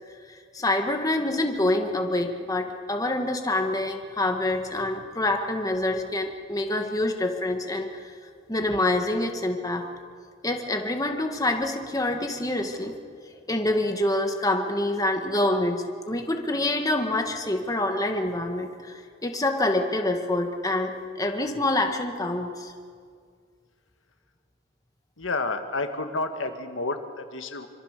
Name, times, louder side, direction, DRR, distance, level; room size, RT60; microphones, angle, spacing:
voice 1, 0.3-8.1 8.5-9.9 10.4-12.9 13.5-22.7, left 1 dB, 20° left, 3 dB, 2.0 m, -26 dB
voice 2, 25.2-27.7, left 3 dB, 75° left, 6 dB, 1.9 m, -30 dB
26.5 x 25.5 x 6.9 m, 2.1 s
head